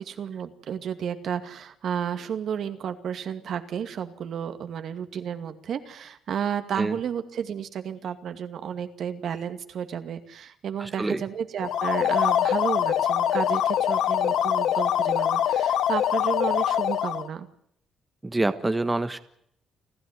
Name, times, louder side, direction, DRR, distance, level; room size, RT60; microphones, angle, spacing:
voice 1, 0.0-17.5, right 8 dB, 65° right, 9 dB, 2.3 m, -32 dB
voice 2, 10.8-11.2 18.2-19.2, right 2 dB, 15° right, 10 dB, 1.4 m, -26 dB
sound 1, 11.6-17.3, left 10 dB, 75° left, 1.3 m, -24 dB
29.5 x 12.5 x 9.7 m, 0.72 s
cardioid pair, 90°, 0 cm